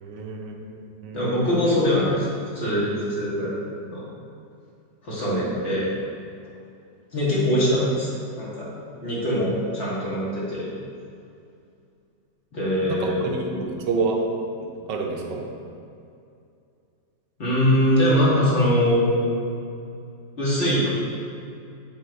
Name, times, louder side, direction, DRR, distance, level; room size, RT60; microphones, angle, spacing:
voice 1, 0.0-0.7 1.0-1.2 5.2-5.5 12.9-14.2 14.9-15.4, right 4 dB, 80° right, 1 dB, 1.4 m, -28 dB
voice 2, 1.1-2.3 2.5-3.6 3.9-4.0 5.0-5.9 7.1-8.7 9.0-10.7 12.5-13.6 17.4-19.2 20.4-21.0, equal, 35° left, -8 dB, 2.1 m, -22 dB
9.0 x 3.5 x 4.6 m, 2.5 s
omnidirectional pair, 1.9 m